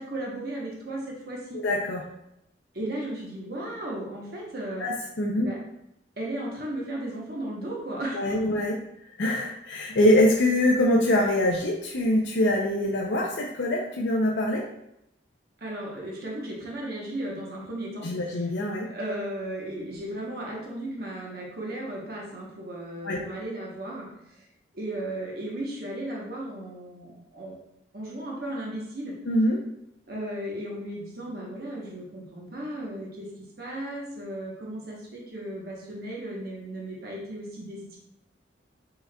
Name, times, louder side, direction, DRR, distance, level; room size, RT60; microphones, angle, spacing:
voice 1, 0.0-1.6 2.7-4.9 5.4-5.6 6.2-8.5 15.6-18.5 18.8-24.5 24.7-27.6 27.9-29.1 30.1-38.0, right 1 dB, 55° right, -3 dB, 1.0 m, -35 dB
voice 2, 1.5-2.0 4.8-5.5 8.1-8.8 9.2-14.6 18.0-18.9 23.0-23.2 29.3-29.6, left 1 dB, 65° left, -1 dB, 0.5 m, -24 dB
5.6 x 4.1 x 2.3 m, 0.81 s
head